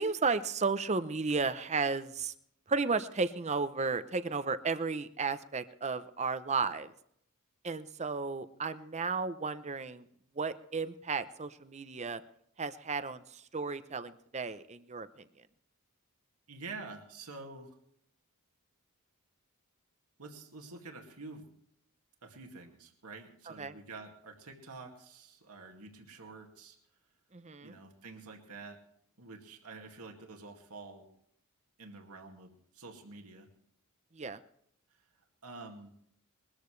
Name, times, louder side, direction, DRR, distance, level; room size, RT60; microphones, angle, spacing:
voice 1, 0.0-2.3 2.7-6.9 7.6-10.0 10.4-12.2 12.6-15.2 23.6-23.7 27.3-27.8 34.1-34.4, right 4 dB, 30° right, 13 dB, 0.7 m, -33 dB
voice 2, 16.5-17.8 20.2-21.5 22.2-26.8 27.6-28.8 29.2-31.0 31.8-33.5 34.9-35.0 35.4-35.9, right 3 dB, 85° right, 2 dB, 2.2 m, -48 dB
22.0 x 13.5 x 3.3 m, 0.70 s
head